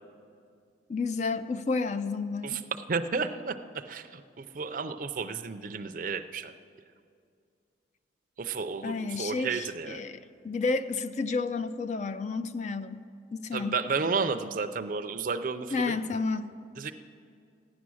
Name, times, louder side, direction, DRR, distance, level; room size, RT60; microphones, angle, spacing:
voice 1, 0.9-2.6 8.8-13.0 13.3-13.8 15.7-16.5, left 4 dB, 40° left, 12 dB, 0.4 m, -31 dB
voice 2, 2.9-6.5 8.4-10.0 13.5-16.0 16.8-16.9, right 5 dB, 45° right, 7 dB, 0.5 m, -32 dB
14.5 x 9.6 x 6.2 m, 2.3 s
head